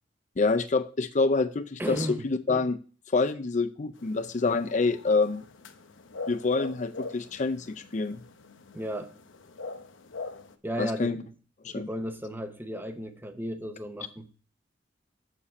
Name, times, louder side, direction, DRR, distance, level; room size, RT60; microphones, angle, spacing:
voice 1, 0.4-2.8 3.1-5.4 6.3-8.2 10.8-11.2 11.6-11.9, left 3 dB, 40° left, 11 dB, 0.5 m, -27 dB
voice 2, 1.8-2.3 8.7-9.1 10.6-11.3 11.8-14.3, equal, 10° right, 8 dB, 0.8 m, -34 dB
sound 1, 4.0-10.5, left 3 dB, 85° left, 0.8 m, -42 dB
7.1 x 7.0 x 4.2 m, 0.39 s
head